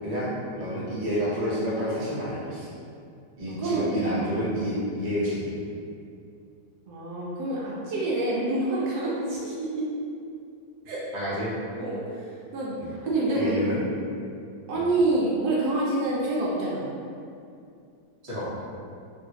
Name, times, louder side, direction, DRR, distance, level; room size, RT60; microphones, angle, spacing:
voice 1, 0.5-2.7 3.4-5.6 11.1-11.5 12.8-12.9 13.3-13.8 14.7-14.9 18.2-18.5, equal, 30° right, -10 dB, 0.6 m, -29 dB
voice 2, 3.6-3.9 6.9-9.8 10.9-11.0 11.8-12.3 12.5-13.6 14.7-16.8, right 2 dB, 75° right, -5 dB, 1.0 m, -27 dB
3.1 x 2.6 x 2.8 m, 2.4 s
omnidirectional pair, 1.8 m